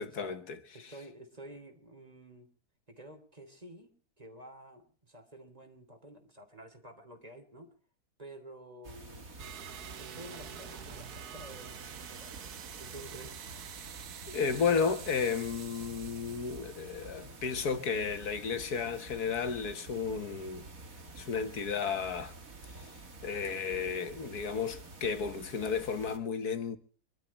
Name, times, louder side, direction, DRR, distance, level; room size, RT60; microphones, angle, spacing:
voice 1, 0.0-0.6 0.8-0.9 14.3-20.7 21.2-22.4 22.8-22.9 23.2-26.8, left 6 dB, 85° left, 2.0 m, -33 dB
voice 2, 0.7-2.5 2.9-7.8 8.2-9.6 10.0-11.7 12.1-12.4 12.8-13.4, right 1 dB, 25° right, 3.3 m, -50 dB
sound 1, 8.8-26.2, right 2 dB, 65° right, 2.7 m, -49 dB
sound 2, 9.4-17.7, right 9 dB, 80° right, 1.6 m, -47 dB
24.5 x 12.5 x 4.3 m
omnidirectional pair, 1.6 m